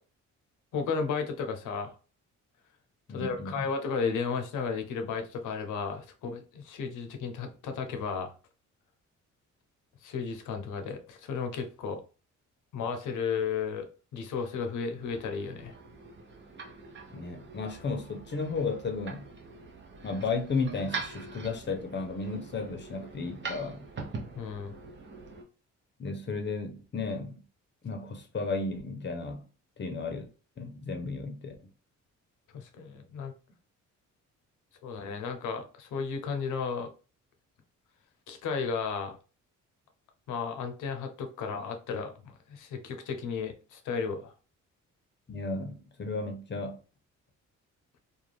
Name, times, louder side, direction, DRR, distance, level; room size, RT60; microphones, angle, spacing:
voice 1, 0.7-1.9 3.1-8.3 10.0-12.0 12.7-13.9 14.1-15.8 24.4-24.7 32.5-33.3 34.8-36.9 38.3-39.2 40.3-44.3, left 5 dB, 85° left, 0.7 m, -34 dB
voice 2, 3.1-3.7 17.1-19.3 20.0-23.9 26.0-27.4 27.8-29.4 29.8-30.3 30.6-31.5 45.3-46.8, left 3 dB, 35° left, 0.7 m, -34 dB
sound 1, 14.8-25.4, right 4 dB, 40° right, 0.7 m, -43 dB
2.5 x 2.2 x 3.2 m
cardioid pair, 95°, 30 cm